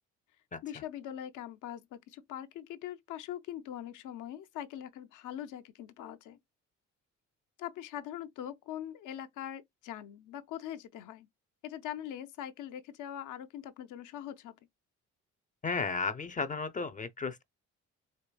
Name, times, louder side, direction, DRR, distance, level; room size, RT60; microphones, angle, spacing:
voice 1, 0.6-6.4 7.6-11.3 11.6-14.5, left 11 dB, 85° left, 0.6 m, -42 dB
voice 2, 15.6-17.4, left 4 dB, 25° left, 0.4 m, -34 dB
4.6 x 2.5 x 2.2 m
cardioid pair, 90°, 30 cm